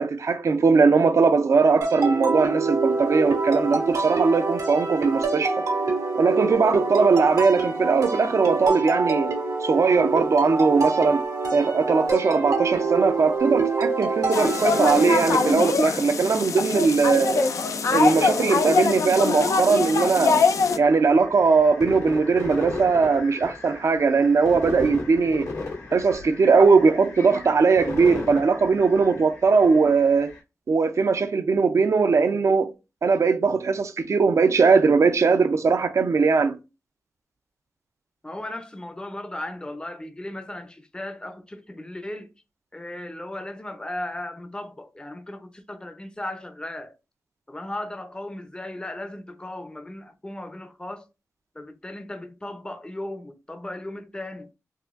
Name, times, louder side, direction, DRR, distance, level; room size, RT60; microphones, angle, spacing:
voice 1, 0.0-5.6 6.2-9.3 9.6-11.2 11.5-17.5 17.9-20.4 20.8-25.5 25.9-30.3 30.7-32.7 33.0-36.6, right 4 dB, 60° right, 0.5 m, -20 dB
sound 1, 1.8-15.5, right 3 dB, 90° right, 1.3 m, -26 dB
sound 2, 14.3-20.8, left 5 dB, 70° left, 0.4 m, -23 dB
sound 3, 20.6-30.4, left 3 dB, 85° left, 1.8 m, -37 dB
voice 2, 38.2-42.3 42.7-46.9 47.5-51.1 51.5-54.5, left 1 dB, 15° left, 0.6 m, -36 dB
4.0 x 2.4 x 2.4 m
cardioid pair, 55°, 6 cm